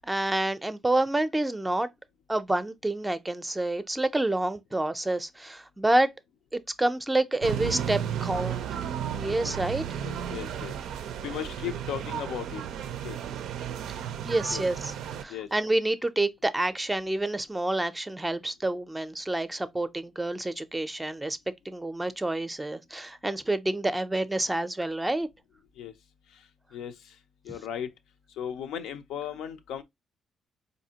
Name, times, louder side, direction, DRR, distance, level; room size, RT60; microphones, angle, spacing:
voice 1, 0.0-1.9 2.3-6.1 6.5-8.7 9.1-9.8 14.2-14.9 15.2-21.4 21.6-25.3, right 2 dB, 10° right, 0.5 m, -28 dB
sound 1, 7.4-15.2, right 9 dB, 80° right, 0.4 m, -33 dB
voice 2, 10.0-12.6 13.0-13.2 14.5-14.7 15.3-15.5 25.8-25.9 26.3-27.2 27.4-27.9 28.3-29.8, left 9 dB, 85° left, 0.5 m, -37 dB
4.1 x 2.6 x 2.8 m
cardioid pair, 90°, 0 cm